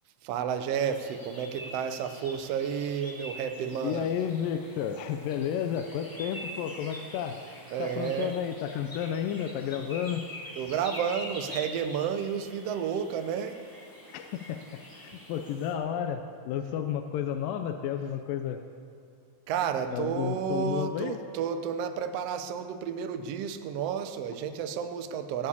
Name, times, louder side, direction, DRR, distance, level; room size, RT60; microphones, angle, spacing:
voice 1, 0.2-4.1 7.7-8.3 10.6-13.6 19.5-25.5, right 7 dB, 85° right, 8 dB, 1.3 m, -31 dB
sound 1, 0.7-15.7, equal, 10° left, 1.5 m, -45 dB
voice 2, 3.8-7.4 7.8-10.3 14.1-14.6 15.0-18.6 19.9-21.2, left 9 dB, 80° left, 7 dB, 2.3 m, -32 dB
17.0 x 7.3 x 8.4 m, 2.4 s
omnidirectional pair, 4.0 m